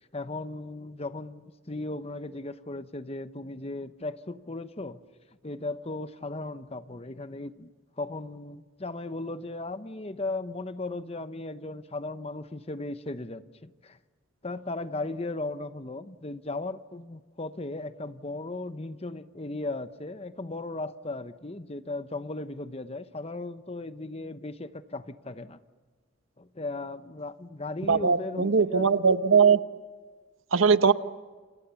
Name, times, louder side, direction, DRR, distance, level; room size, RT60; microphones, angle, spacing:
voice 1, 0.1-5.0 5.4-7.7 8.0-14.0 14.4-25.6 26.4-28.9, left 2 dB, 30° left, 11 dB, 0.9 m, -36 dB
voice 2, 27.9-29.6 30.5-30.9, right 5 dB, 85° right, 12 dB, 0.9 m, -20 dB
29.0 x 28.5 x 7.1 m, 1.4 s
head